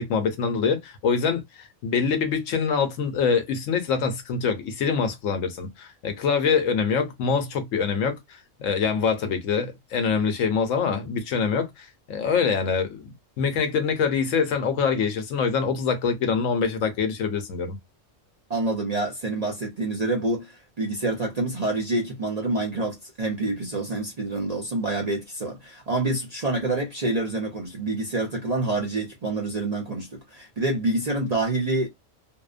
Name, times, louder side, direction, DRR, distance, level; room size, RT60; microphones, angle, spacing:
voice 1, 0.0-8.2 8.6-17.8, left 5 dB, 75° left, 1.0 m, -25 dB
voice 2, 18.5-31.9, right 2 dB, 45° right, 0.5 m, -27 dB
2.7 x 2.0 x 2.4 m
omnidirectional pair, 1.4 m